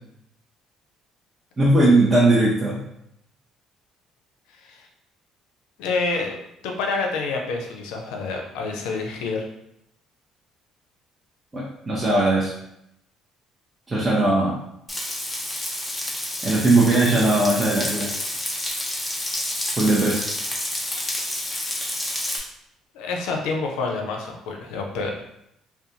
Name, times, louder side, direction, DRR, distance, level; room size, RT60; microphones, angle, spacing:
voice 1, 1.6-2.8 11.5-12.5 13.9-14.6 16.4-18.1 19.8-20.2, right 2 dB, 30° right, -6 dB, 0.6 m, -19 dB
voice 2, 5.8-6.4 6.6-9.4 22.9-25.1, left 3 dB, 80° left, 2 dB, 0.4 m, -27 dB
Frying (food), 14.9-22.4, left 1 dB, 10° left, 0.8 m, -29 dB
2.4 x 2.2 x 2.8 m, 0.78 s
hypercardioid pair, 60°, 0 cm